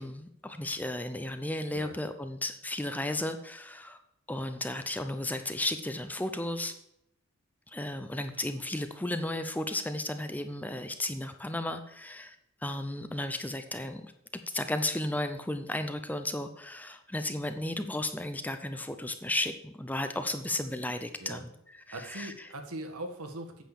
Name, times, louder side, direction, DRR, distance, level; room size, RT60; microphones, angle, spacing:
voice 1, 0.0-4.0 4.3-6.7 7.7-12.4 12.6-14.1 14.5-22.5, left 1 dB, 5° left, 8 dB, 0.5 m, -34 dB
voice 2, 21.9-23.6, right 1 dB, 80° right, 5 dB, 1.6 m, -40 dB
9.2 x 6.6 x 7.2 m, 0.79 s
head